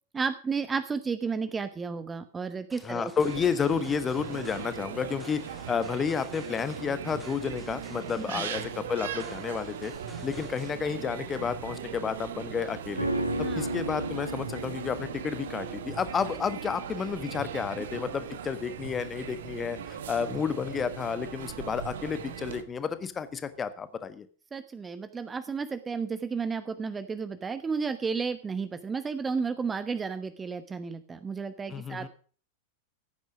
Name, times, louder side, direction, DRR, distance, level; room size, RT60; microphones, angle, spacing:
voice 1, 0.1-3.1 8.2-8.5 13.4-13.7 24.5-32.1, right 5 dB, 15° right, 11 dB, 1.0 m, -32 dB
sound 1, 2.7-10.7, equal, ahead, 2.4 m, -51 dB
voice 2, 2.8-9.9 10.2-13.1 13.4-24.3 31.7-32.1, left 6 dB, 20° left, 13 dB, 1.3 m, -31 dB
fez streetcorner music people, 3.2-22.6, right 8 dB, 60° right, 1.4 m, -39 dB
sound 2, 13.0-22.4 22.7-22.8, right 1 dB, 90° right, 1.6 m, -36 dB
15.5 x 9.3 x 5.1 m, 0.41 s
figure-of-eight pair, 90°, 0 cm